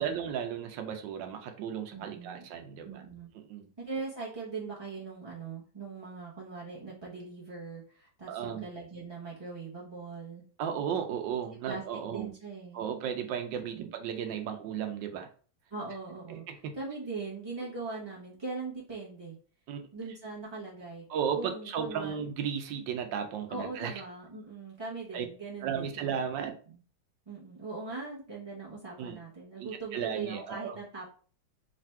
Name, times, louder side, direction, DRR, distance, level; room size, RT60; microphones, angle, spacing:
voice 1, 0.0-3.0 3.5-3.7 8.3-8.6 10.6-12.3 12.7-15.3 16.3-16.7 19.7-19.8 21.1-23.9 25.1-25.2 25.6-26.6 29.0-29.2 29.6-30.8, right 8 dB, 80° right, 6 dB, 1.3 m, -34 dB
voice 2, 1.9-2.4 2.8-3.3 3.8-10.4 11.7-11.8 12.1-12.8 13.7-13.9 15.7-16.5 16.7-19.4 19.9-21.0 21.4-22.3 23.5-26.5 27.3-31.1, right 4 dB, 30° right, -6 dB, 0.4 m, -41 dB
3.2 x 2.5 x 4.3 m, 0.42 s
omnidirectional pair, 2.0 m